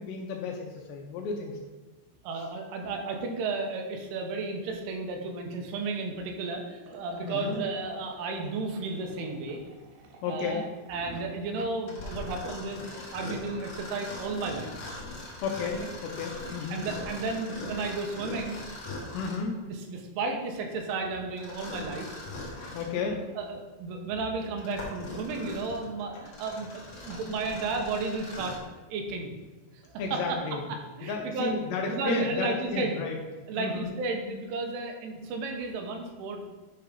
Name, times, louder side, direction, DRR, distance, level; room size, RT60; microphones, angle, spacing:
voice 1, 0.0-1.6 7.3-7.6 10.2-10.6 15.4-16.8 19.1-19.6 22.7-23.2 30.0-30.6 31.0-33.2 33.6-33.9, left 4 dB, 80° left, 1 dB, 2.7 m, -32 dB
voice 2, 2.2-9.6 10.2-14.9 16.7-18.6 19.7-22.1 23.0-28.6 28.9-29.3 29.7-30.4 31.0-31.6 31.9-33.0 33.5-36.5, right 3 dB, 90° right, 3 dB, 3.5 m, -33 dB
Liquid, 6.8-18.0, right 3 dB, 70° right, 2.8 m, -53 dB
Mechanisms, 11.9-19.5 21.4-23.0 23.6-23.7 24.3-28.7, left 2 dB, 55° left, 2.0 m, -41 dB
10.0 x 3.5 x 5.4 m, 1.2 s
omnidirectional pair, 5.5 m